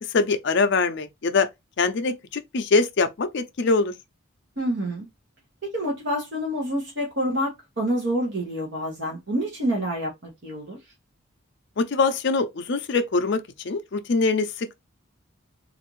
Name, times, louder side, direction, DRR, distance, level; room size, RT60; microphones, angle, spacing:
voice 1, 0.1-1.5 1.8-3.9 11.8-14.7, left 4 dB, 55° left, 0.5 m, -23 dB
voice 2, 4.6-5.1 5.7-10.8, equal, 55° right, 1.0 m, -27 dB
3.3 x 2.5 x 3.0 m
head